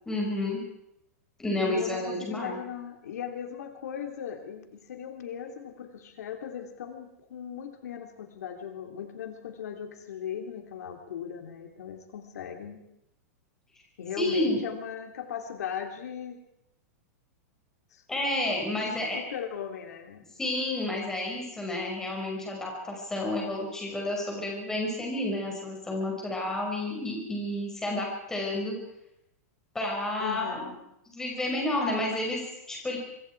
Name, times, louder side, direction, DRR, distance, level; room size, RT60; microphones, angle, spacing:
voice 1, 0.1-0.6 1.4-2.6 14.2-14.6 18.1-19.2 20.4-28.7 29.7-30.7 31.1-32.4 32.7-33.0, left 1 dB, 5° left, -1 dB, 5.8 m, -30 dB
voice 2, 1.5-12.8 14.0-16.4 17.9-18.0 18.8-20.3 30.2-30.8, left 8 dB, 80° left, 5 dB, 3.3 m, -38 dB
24.5 x 24.5 x 4.8 m, 0.83 s
supercardioid pair, 165°, 9 cm